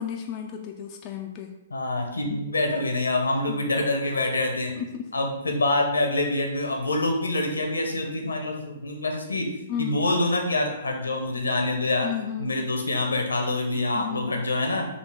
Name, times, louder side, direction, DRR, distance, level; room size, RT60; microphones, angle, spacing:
voice 1, 0.0-1.5 3.5-3.9 4.8-5.1 5.4-5.6 9.7-10.0 12.0-12.6 13.9-14.4, left 9 dB, 35° left, 2 dB, 0.4 m, -33 dB
voice 2, 1.7-4.7 5.1-9.4 9.8-12.1 12.4-14.9, left 2 dB, 80° left, 3 dB, 0.9 m, -26 dB
4.2 x 2.8 x 4.5 m, 0.91 s
figure-of-eight pair, 120°, 0 cm